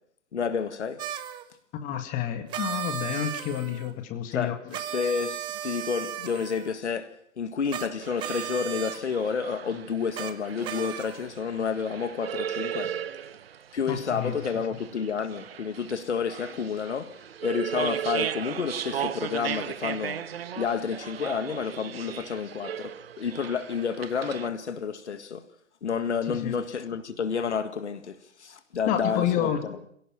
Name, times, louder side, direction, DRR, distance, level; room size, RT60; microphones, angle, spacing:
voice 1, 0.3-1.0 4.3-4.6 4.9-13.0 13.7-20.2 20.6-25.5 25.8-29.8, left 6 dB, 60° left, 1.9 m, -30 dB
sound 1, 1.0-1.4 2.5-3.9 4.7-6.8 7.7-7.9 8.2-9.0 10.1-10.3 10.6-11.3, right 11 dB, 10° right, 0.7 m, -35 dB
voice 2, 1.7-4.8 13.9-14.5 26.3-26.5 28.9-29.6, left 10 dB, 20° left, 1.9 m, -29 dB
sound 2, 8.0-24.5, right 9 dB, 50° right, 1.2 m, -36 dB
26.5 x 17.0 x 5.9 m
figure-of-eight pair, 125°, 39 cm